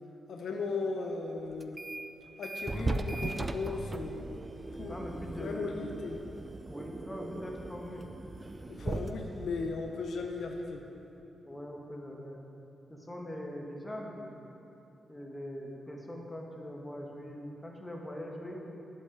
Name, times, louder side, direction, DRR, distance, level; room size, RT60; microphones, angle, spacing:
voice 1, 0.3-1.8 2.4-4.3 4.8-5.0 5.4-6.2 8.7-10.8, left 3 dB, 75° left, 2 dB, 0.6 m, -36 dB
sound 1, 1.6-2.1 2.4-10.9, right 2 dB, 30° right, 0.5 m, -39 dB
voice 2, 4.8-5.9 6.7-8.1 8.6-9.2 11.4-12.4 12.9-14.3 15.1-18.6, equal, 15° left, 0 dB, 1.4 m, -42 dB
7.5 x 7.5 x 4.9 m, 2.9 s
cardioid pair, 55°, 0 cm